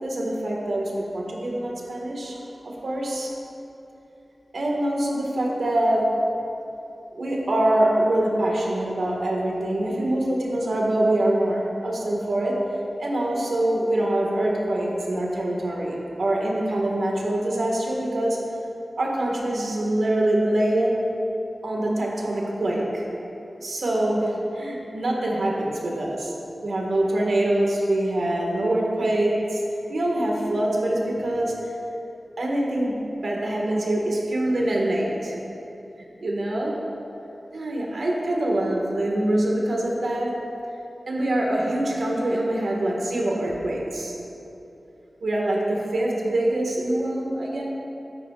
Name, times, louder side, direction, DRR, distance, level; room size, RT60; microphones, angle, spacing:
voice 1, 0.0-3.3 4.5-6.3 7.1-12.7 13.0-18.4 19.0-21.0 21.6-23.1 23.6-26.3 26.6-29.6 29.9-31.7 32.4-35.4 36.2-36.8 37.5-40.4 41.1-44.2 45.2-47.6, right 1 dB, 80° right, -2 dB, 1.8 m, -24 dB
12.5 x 10.0 x 2.5 m, 2.9 s
wide cardioid pair, 65°, 0 cm